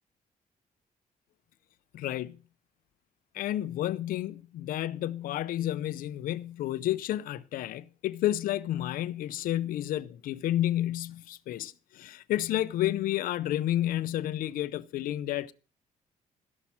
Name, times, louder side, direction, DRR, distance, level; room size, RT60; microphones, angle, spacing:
voice 1, 1.9-2.4 3.3-15.5, left 13 dB, 85° left, 0.6 m, -31 dB
13.0 x 6.1 x 7.1 m
cardioid pair, 85°, 14 cm